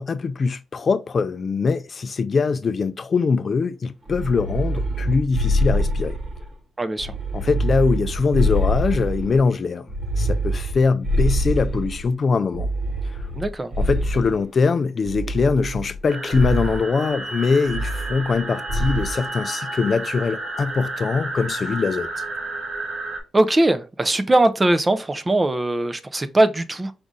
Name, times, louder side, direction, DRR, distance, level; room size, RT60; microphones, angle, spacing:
voice 1, 0.0-6.2 7.3-9.8 10.2-12.7 13.1-13.3 13.8-22.1, left 4 dB, 45° left, 0.4 m, -22 dB
sound 1, 4.1-6.5 7.0-9.4 9.9-12.1 12.5-14.4 15.1-16.0 16.3-16.8 17.7-18.4 18.7-19.1, equal, 55° right, 1.4 m, -24 dB
voice 2, 6.8-7.1 13.4-13.7 23.3-26.9, right 1 dB, 20° right, 0.4 m, -20 dB
sound 2, 16.1-23.2, right 2 dB, 75° right, 2.0 m, -31 dB
5.0 x 2.6 x 3.5 m
cardioid pair, 90°, 0 cm